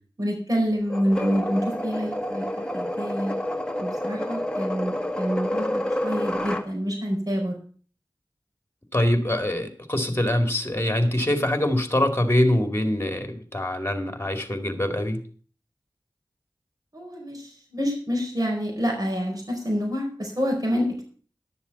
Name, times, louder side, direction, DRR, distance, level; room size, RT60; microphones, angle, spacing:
voice 1, 0.2-3.4 3.8-7.6 16.9-21.0, equal, 50° right, 0 dB, 4.4 m, -27 dB
sound 1, 0.9-6.7, left 1 dB, 10° left, 1.5 m, -29 dB
voice 2, 8.9-15.2, left 1 dB, 30° left, 7 dB, 2.4 m, -24 dB
11.5 x 7.2 x 7.0 m, 0.43 s
wide cardioid pair, 45°, 8 cm